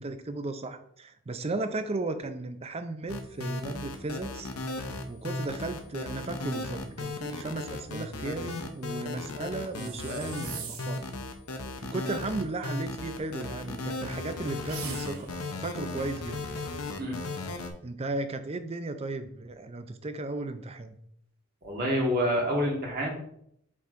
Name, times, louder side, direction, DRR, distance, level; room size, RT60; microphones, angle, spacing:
voice 1, 0.0-4.5 5.1-11.1 11.8-15.3 15.6-16.4 17.8-21.0, right 2 dB, 25° right, 9 dB, 0.4 m, -35 dB
sound 1, 3.1-17.7, left 2 dB, 75° left, 0.8 m, -36 dB
sound 2, 9.7-11.1 14.6-15.4, right 7 dB, 70° right, 0.8 m, -42 dB
voice 2, 21.6-23.1, equal, 40° right, -1 dB, 1.4 m, -27 dB
8.3 x 4.5 x 2.5 m, 0.71 s
head